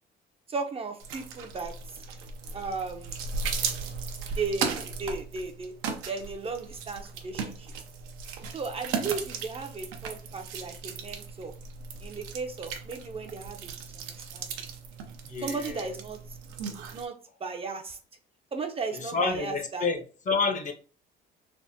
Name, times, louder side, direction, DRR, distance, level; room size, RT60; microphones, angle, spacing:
voice 1, 0.5-1.7 2.5-3.2 4.4-5.7 6.1-7.7 8.5-11.5 12.0-14.0 14.3-14.5 15.4-16.2 16.9-17.2 17.4-18.0 18.5-19.9, right 4 dB, 30° right, 0.5 m, -35 dB
sound 1, 1.0-17.1, right 5 dB, 85° right, 0.6 m, -37 dB
voice 2, 15.2-16.0 19.0-20.7, left 4 dB, 40° left, 0.6 m, -29 dB
3.4 x 2.1 x 2.6 m
supercardioid pair, 90°, 20 cm